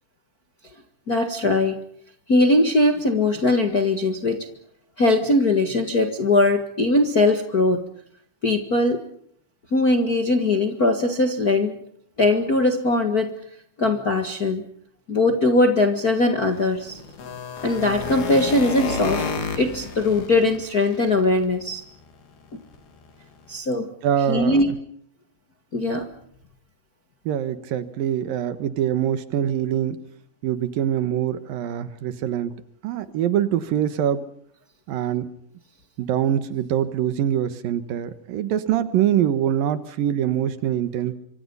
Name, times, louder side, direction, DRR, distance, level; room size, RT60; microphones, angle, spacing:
voice 1, 1.1-1.8 2.3-4.4 5.0-7.8 8.4-9.0 9.7-11.8 12.2-13.3 13.8-14.6 15.1-17.0 17.6-19.2 19.6-21.8 23.5-23.9 24.3-24.7 25.7-26.1, left 2 dB, 40° left, 5 dB, 1.3 m, -20 dB
sound 1, 16.5-21.6 22.0-22.2 22.6-22.8 23.0-23.1 23.5-23.6, left 5 dB, 90° left, 5.3 m, -31 dB
voice 2, 24.0-24.8 27.3-30.0 30.4-32.6 32.8-34.2 34.9-35.3 36.0-41.1, right 10 dB, 70° right, 12 dB, 2.9 m, -24 dB
26.0 x 25.5 x 5.6 m, 0.67 s
omnidirectional pair, 4.3 m